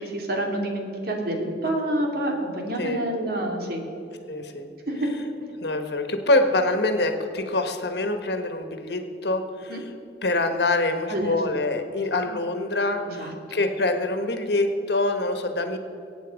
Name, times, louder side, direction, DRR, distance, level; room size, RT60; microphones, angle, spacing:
voice 1, 0.0-3.8 4.9-5.1 9.7-9.8 11.1-11.4 13.1-13.3, right 1 dB, 60° right, 1 dB, 2.6 m, -28 dB
voice 2, 4.3-4.7 5.6-9.9 10.2-15.8, left 2 dB, 65° left, 6 dB, 1.5 m, -25 dB
22.5 x 9.1 x 5.2 m, 2.9 s
head